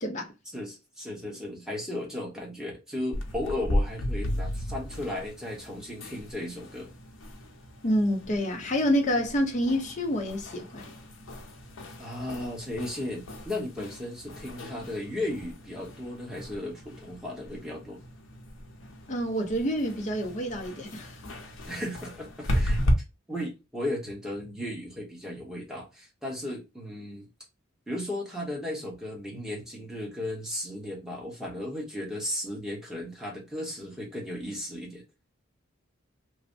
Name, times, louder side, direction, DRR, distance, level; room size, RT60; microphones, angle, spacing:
voice 1, 0.5-6.9 12.0-18.0 21.7-22.8 23.3-27.3 27.9-35.0, left 1 dB, 5° right, 0.9 m, -35 dB
sound 1, 3.1-22.9, equal, 75° left, 0.7 m, -35 dB
voice 2, 7.8-10.9 19.1-21.2, equal, 40° left, 0.6 m, -28 dB
3.1 x 2.0 x 2.5 m
head